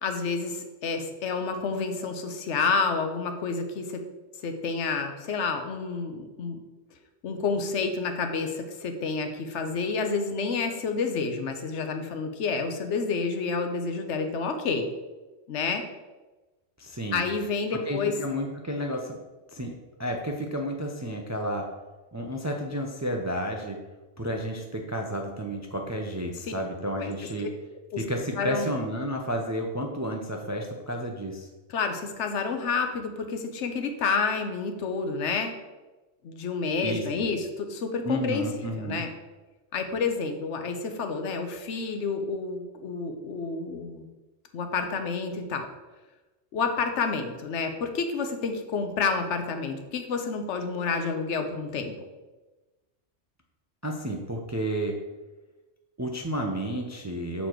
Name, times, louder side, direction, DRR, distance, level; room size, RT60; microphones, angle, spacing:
voice 1, 0.0-4.0 4.4-6.6 7.2-14.9 15.5-15.8 17.1-18.1 27.0-27.1 27.9-28.0 28.4-28.7 31.7-35.5 36.2-39.1 39.7-44.1 44.5-45.7 46.5-51.9, left 4 dB, 80° left, 6 dB, 1.1 m, -29 dB
voice 2, 16.8-17.3 17.7-19.2 19.5-19.7 20.0-21.7 22.1-23.8 24.2-27.5 28.0-31.5 36.8-37.3 38.0-39.0 53.8-55.0 56.0-57.5, equal, 25° right, 2 dB, 0.4 m, -31 dB
6.7 x 4.2 x 4.5 m, 1.2 s
omnidirectional pair, 1.2 m